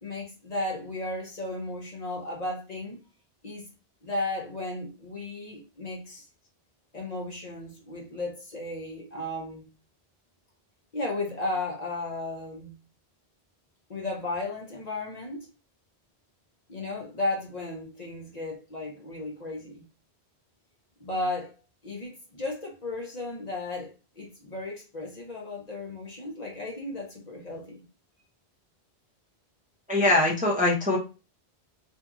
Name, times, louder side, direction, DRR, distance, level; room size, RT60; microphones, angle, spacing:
voice 1, 0.0-3.0 3.4-3.7 4.0-6.3 6.9-9.7 10.9-12.7 13.9-15.5 16.7-19.8 21.0-21.5 21.8-27.8, left 2 dB, 45° left, 0.8 m, -34 dB
voice 2, 29.9-31.0, left 2 dB, 10° right, 0.5 m, -22 dB
2.6 x 2.6 x 2.3 m
omnidirectional pair, 1.1 m